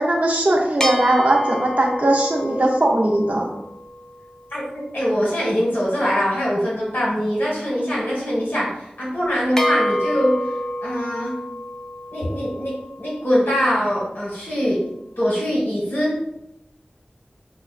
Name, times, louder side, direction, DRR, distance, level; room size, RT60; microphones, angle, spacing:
voice 1, 0.0-3.5, right 1 dB, 45° right, -2 dB, 0.5 m, -19 dB
sound 1, 0.8-4.5 9.6-13.9, equal, 20° left, 0.5 m, -28 dB
voice 2, 4.9-10.3 10.8-11.3 12.1-14.8 15.2-16.1, equal, 70° left, -6 dB, 1.3 m, -22 dB
5.4 x 2.1 x 2.4 m, 0.83 s
wide cardioid pair, 50°, 3 cm